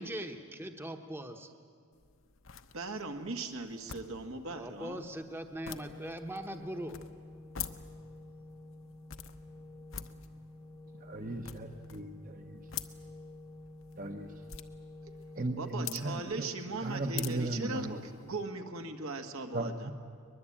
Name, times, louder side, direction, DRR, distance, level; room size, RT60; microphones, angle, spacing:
voice 1, 0.0-1.5 4.6-7.0, right 1 dB, 10° right, 6 dB, 1.0 m, -40 dB
sound 1, 1.9-18.4, left 9 dB, 65° left, 1.0 m, -48 dB
voice 2, 2.7-5.1 15.6-19.9, right 3 dB, 75° right, 5 dB, 1.7 m, -39 dB
Organ, 5.7-16.6, left 1 dB, 15° left, 1.1 m, -50 dB
voice 3, 11.0-12.6 14.0-14.4 15.3-18.0 19.5-19.9, right 2 dB, 40° right, 5 dB, 1.0 m, -37 dB
22.5 x 21.5 x 8.7 m, 2.2 s
head